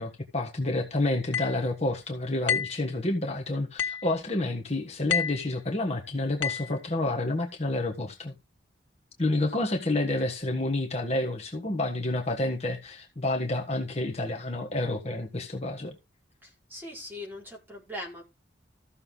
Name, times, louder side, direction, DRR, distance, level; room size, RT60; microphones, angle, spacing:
voice 1, 0.0-8.3 9.2-15.9, left 2 dB, 35° left, 1.4 m, -29 dB
sound 1, 1.3-1.6 2.5-2.8 3.8-4.1 5.1-5.5 6.4-6.7, left 7 dB, 90° left, 1.7 m, -28 dB
voice 2, 16.4-18.2, left 1 dB, 10° right, 4.9 m, -40 dB
14.5 x 6.7 x 3.9 m
head